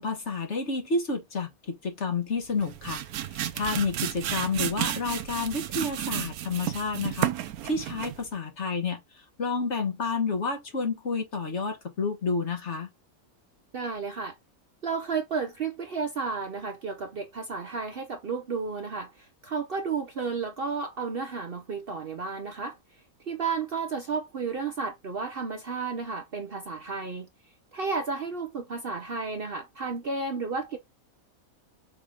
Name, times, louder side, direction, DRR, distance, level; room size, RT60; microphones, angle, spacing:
voice 1, 0.0-3.0 3.3-7.3 7.6-12.9, left 4 dB, 50° left, 1.6 m, -30 dB
sound 1, 2.5-8.3, right 11 dB, 85° right, 1.1 m, -32 dB
voice 2, 13.7-14.3 14.8-19.1 19.4-22.8 23.3-27.3 27.7-30.8, right 4 dB, 50° right, 0.8 m, -32 dB
6.8 x 2.7 x 5.1 m
omnidirectional pair, 1.5 m